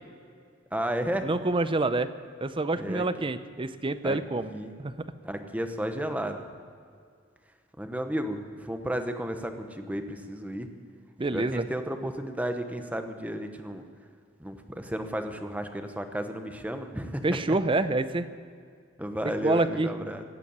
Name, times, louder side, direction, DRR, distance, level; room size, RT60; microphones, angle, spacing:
voice 1, 0.7-1.3 2.8-3.0 4.0-4.2 4.5-4.7 5.2-6.4 7.8-10.7 11.3-13.8 14.4-17.2 19.0-20.2, equal, 10° right, 6 dB, 1.0 m, -33 dB
voice 2, 1.2-2.1 2.4-4.5 4.8-5.1 11.2-11.7 17.2-18.3 19.4-19.9, right 2 dB, 25° right, 12 dB, 0.6 m, -27 dB
17.0 x 8.3 x 9.4 m, 2.2 s
head